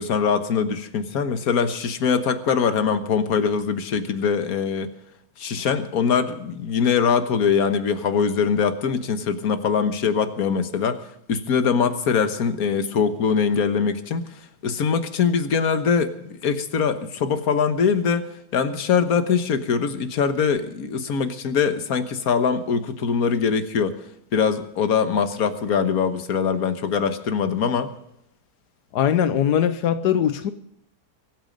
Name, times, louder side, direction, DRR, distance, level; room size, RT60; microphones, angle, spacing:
voice 1, 0.0-4.9 5.4-11.0 11.3-14.2 14.6-18.3 18.5-24.0 24.3-27.9, left 6 dB, 65° left, 9 dB, 1.7 m, -22 dB
voice 2, 28.9-30.5, left 9 dB, 90° left, 11 dB, 1.4 m, -21 dB
23.5 x 9.4 x 5.3 m, 0.78 s
omnidirectional pair, 1.7 m